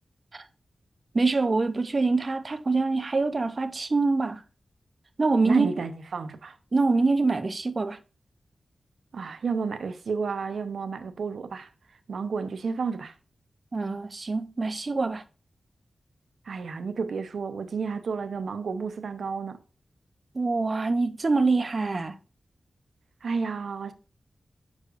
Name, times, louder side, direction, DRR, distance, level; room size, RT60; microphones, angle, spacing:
voice 1, 1.1-4.4 5.2-5.7 6.7-8.0 13.7-15.2 20.3-22.2, right 3 dB, 40° right, 0.6 m, -24 dB
voice 2, 5.4-6.6 9.1-11.7 12.1-13.1 16.4-19.6 23.2-23.9, right 5 dB, 85° right, 0.8 m, -31 dB
9.5 x 6.6 x 2.5 m
wide cardioid pair, 145°, 0 cm